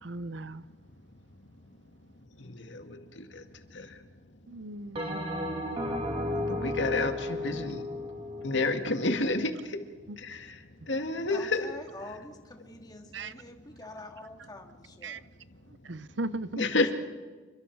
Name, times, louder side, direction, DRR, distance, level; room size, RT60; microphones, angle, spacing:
voice 1, 0.0-0.6 4.5-5.2 10.1-10.2 13.1-13.3 15.0-15.2 15.8-16.6, right 2 dB, 80° right, 15 dB, 0.8 m, -37 dB
voice 2, 2.4-3.4 3.7-3.9 6.5-7.8 8.4-9.5 10.2-10.4 10.9-11.7 16.6-16.9, left 3 dB, 85° left, 6 dB, 2.0 m, -29 dB
Bell, 5.0-9.6, left 1 dB, 30° right, 2.7 m, -34 dB
voice 3, 11.3-15.3, left 2 dB, 20° left, 3 dB, 2.4 m, -46 dB
28.5 x 24.0 x 4.7 m, 1.3 s
head